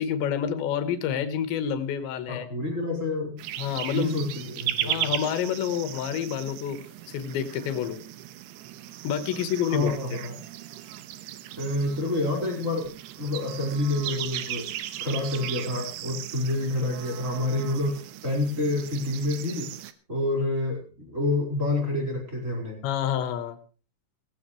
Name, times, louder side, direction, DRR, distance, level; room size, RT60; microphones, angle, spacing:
voice 1, 0.0-2.5 3.6-4.1 4.9-6.8 7.1-8.0 9.0-10.2 22.8-23.6, left 8 dB, 80° left, 10 dB, 3.7 m, -28 dB
voice 2, 2.3-3.3 3.9-5.1 9.6-10.4 11.6-12.9 13.2-14.7 15.0-19.7 20.1-22.8, left 2 dB, 15° right, 0 dB, 4.9 m, -28 dB
sound 1, 3.4-19.9, right 12 dB, 75° right, 3.0 m, -37 dB
18.0 x 16.0 x 3.2 m, 0.36 s
omnidirectional pair, 5.1 m